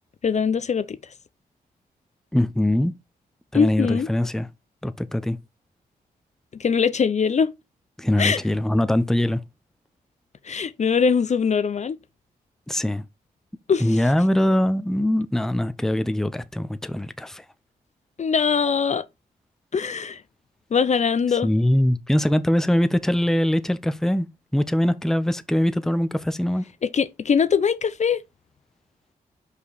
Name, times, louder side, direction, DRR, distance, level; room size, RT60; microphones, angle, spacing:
voice 1, 0.2-1.0 3.5-4.1 6.6-7.5 8.2-8.4 10.4-12.0 13.7-14.0 18.2-19.0 19.7-20.2 20.7-21.5 26.9-28.2, left 6 dB, 45° left, 0.6 m, -22 dB
voice 2, 2.3-2.9 3.5-4.5 4.8-5.4 8.0-9.4 12.7-13.0 13.8-17.4 21.4-24.3 24.5-26.6, left 1 dB, 5° left, 0.6 m, -22 dB
5.5 x 4.9 x 4.0 m
cardioid pair, 70°, 16 cm